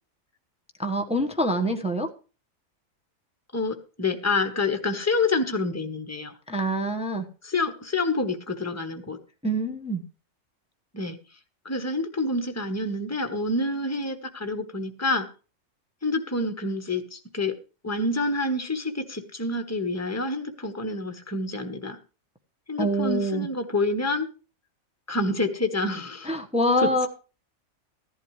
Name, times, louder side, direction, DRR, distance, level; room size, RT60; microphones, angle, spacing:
voice 1, 0.8-2.1 6.5-7.3 9.4-10.0 22.8-23.5 26.2-27.1, right 1 dB, 5° right, 3 dB, 1.1 m, -25 dB
voice 2, 3.5-6.3 7.4-9.2 10.9-11.2 11.6-15.3 16.0-17.5 17.8-22.0 22.7-24.3 25.1-26.3 26.8-27.1, left 2 dB, 10° left, 7 dB, 1.2 m, -27 dB
15.5 x 11.0 x 3.2 m, 0.34 s
omnidirectional pair, 1.4 m